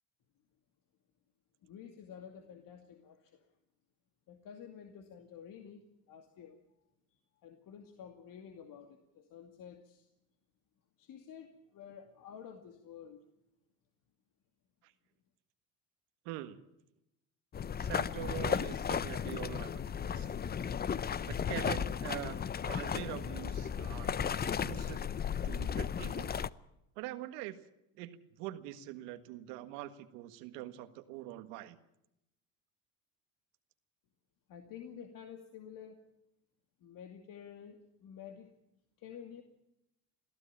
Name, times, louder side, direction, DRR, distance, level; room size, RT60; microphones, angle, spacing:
voice 1, 1.6-3.5 4.3-6.6 7.4-10.1 11.0-13.2 34.5-36.0 36.8-38.5 39.0-39.4, left 8 dB, 60° left, 5 dB, 2.4 m, -50 dB
voice 2, 16.3-16.6 17.8-20.3 21.3-22.4 22.7-25.1 25.4-26.3 27.0-27.6 27.9-31.8, right 14 dB, 85° right, 9 dB, 1.7 m, -44 dB
sound 1, 17.5-26.5, left 7 dB, 25° left, 0.7 m, -35 dB
22.0 x 15.0 x 8.7 m, 0.84 s
supercardioid pair, 85°, 38 cm